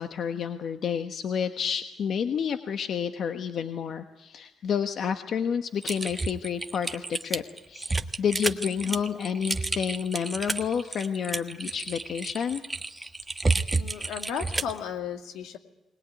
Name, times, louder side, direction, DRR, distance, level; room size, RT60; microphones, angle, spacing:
voice 1, 0.0-12.6, left 7 dB, 60° left, 7 dB, 1.2 m, -30 dB
Typing, 5.8-14.8, right 3 dB, 15° right, 1.4 m, -30 dB
voice 2, 13.8-15.6, left 8 dB, 85° left, 5 dB, 2.3 m, -34 dB
21.0 x 20.0 x 9.3 m, 0.99 s
cardioid pair, 90°, 0 cm